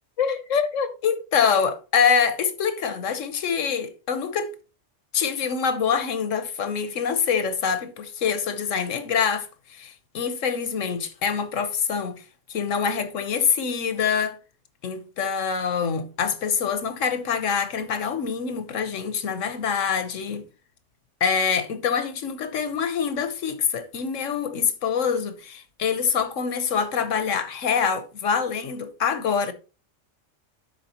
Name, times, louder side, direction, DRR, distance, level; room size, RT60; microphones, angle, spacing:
voice 1, 0.2-4.5 5.1-12.2 12.5-14.4 14.8-20.5 21.2-29.5, left 6 dB, 80° left, 1.3 m, -25 dB
12.0 x 4.8 x 2.9 m
omnidirectional pair, 1.3 m